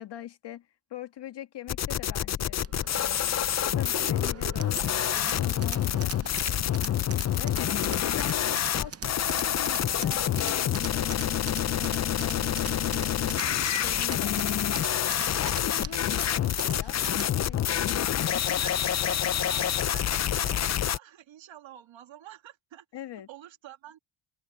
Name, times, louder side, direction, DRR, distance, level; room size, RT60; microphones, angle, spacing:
voice 1, 0.0-2.6 2.9-7.8 8.0-14.6 15.0-18.6 22.9-23.3, left 11 dB, 60° left, 1.8 m, -44 dB
sound 1, 1.7-21.0, left 10 dB, 35° left, 0.5 m, -27 dB
sound 2, 2.6-19.2, right 8 dB, 30° right, 0.7 m, -43 dB
voice 2, 17.6-18.0 18.6-22.9 23.3-24.0, right 12 dB, 75° right, 1.9 m, -48 dB
cardioid pair, 140°, 46 cm